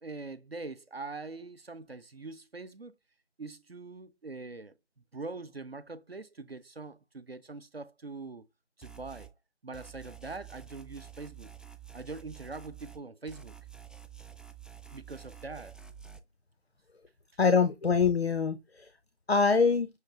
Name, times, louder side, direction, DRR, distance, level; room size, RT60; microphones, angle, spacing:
voice 1, 0.0-2.9 3.4-4.7 5.1-8.5 8.8-9.3 9.6-11.5 11.9-13.6 14.9-15.8, right 3 dB, 60° right, 0.6 m, -43 dB
sound 1, 8.8-9.3 9.7-13.0 13.3-16.2, right 9 dB, ahead, 0.3 m, -49 dB
voice 2, 17.4-18.9 19.3-19.9, left 5 dB, 60° left, 0.6 m, -24 dB
6.4 x 2.3 x 3.5 m
figure-of-eight pair, 180°, 35 cm